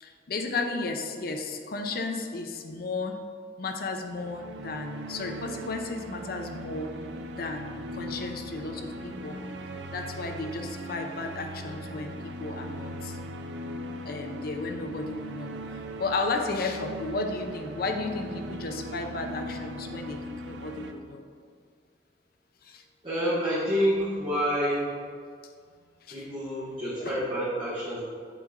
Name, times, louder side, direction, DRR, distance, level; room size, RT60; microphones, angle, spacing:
voice 1, 0.0-3.2 3.6-6.9 7.3-9.4 9.9-13.2 14.1-15.6 16.0-21.2 22.6-22.8 26.1-26.2 27.0-27.2, left 3 dB, 55° left, 5 dB, 0.5 m, -34 dB
sound 1, 3.9-20.9, equal, 80° right, 0.5 m, -39 dB
voice 2, 23.0-24.8 26.1-28.0, equal, 30° right, -12 dB, 1.4 m, -28 dB
6.1 x 4.2 x 3.7 m, 2.1 s
head